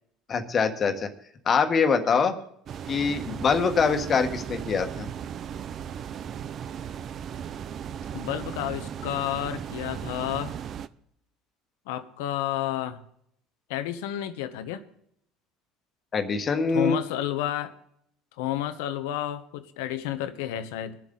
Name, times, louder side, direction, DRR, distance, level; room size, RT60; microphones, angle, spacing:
voice 1, 0.3-1.1 1.4-2.3 2.9-5.1 16.1-17.0, left 5 dB, 35° left, 7 dB, 1.4 m, -24 dB
voice 2, 2.0-2.3 8.1-10.6 11.9-13.0 13.7-14.8 16.7-17.8 18.4-21.0, left 12 dB, 85° left, 11 dB, 0.9 m, -31 dB
sound 1, 2.7-10.9, right 8 dB, 45° right, 0.5 m, -36 dB
23.0 x 7.7 x 3.9 m, 0.71 s
supercardioid pair, 110°, 0 cm